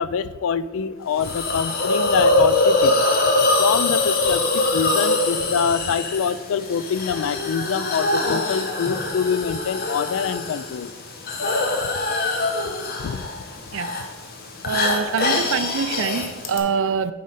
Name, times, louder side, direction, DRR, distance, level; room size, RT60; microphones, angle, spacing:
voice 1, 0.0-3.1 3.6-10.9 13.0-13.2 14.7-14.8, left 7 dB, 65° left, 17 dB, 0.3 m, -25 dB
Hiss, 1.2-16.6, left 2 dB, 45° left, 1.1 m, -23 dB
voice 2, 14.6-17.1, right 6 dB, 65° right, 13 dB, 0.5 m, -24 dB
7.6 x 5.1 x 5.5 m, 1.4 s
head